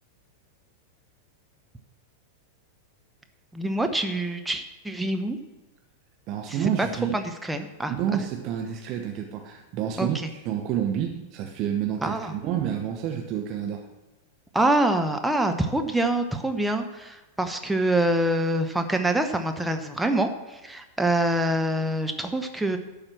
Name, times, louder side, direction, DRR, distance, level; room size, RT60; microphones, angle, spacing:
voice 1, 3.5-5.4 6.5-6.9 7.1-7.9 10.0-10.3 12.0-12.3 14.5-22.8, right 1 dB, 5° right, 5 dB, 0.9 m, -25 dB
voice 2, 6.3-7.1 7.9-13.8, right 9 dB, 40° right, 3 dB, 1.1 m, -29 dB
11.5 x 4.9 x 7.4 m, 1.1 s
figure-of-eight pair, 90°, 0 cm